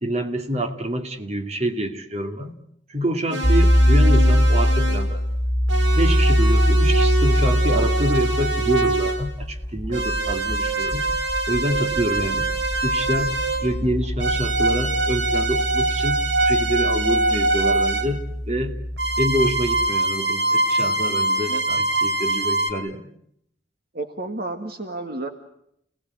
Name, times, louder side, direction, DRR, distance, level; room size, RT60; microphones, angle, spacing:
voice 1, 0.0-2.6 2.9-5.2 5.9-11.0 11.5-12.5 12.8-13.3 13.6-18.8 19.2-23.1, equal, 35° right, 6 dB, 2.5 m, -26 dB
sound 1, 3.3-5.2 5.7-9.3 9.9-13.8 14.2-18.1 19.0-22.7, right 2 dB, 85° right, 3.4 m, -24 dB
sound 2, 3.4-19.9, equal, 30° left, 3.7 m, -22 dB
voice 2, 23.9-25.3, right 2 dB, 55° right, 6 dB, 2.0 m, -31 dB
29.5 x 19.0 x 9.6 m, 0.74 s
head